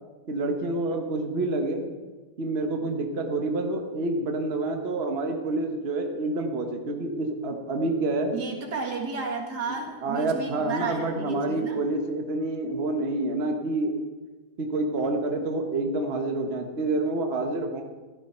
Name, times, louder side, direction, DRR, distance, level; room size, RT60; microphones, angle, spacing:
voice 1, 0.3-1.9 2.4-8.3 10.0-13.9 14.6-17.8, right 2 dB, 40° right, 3 dB, 1.3 m, -28 dB
voice 2, 8.3-11.8, right 4 dB, 75° right, 2 dB, 2.4 m, -32 dB
15.0 x 12.0 x 4.3 m, 1.3 s
omnidirectional pair, 1.8 m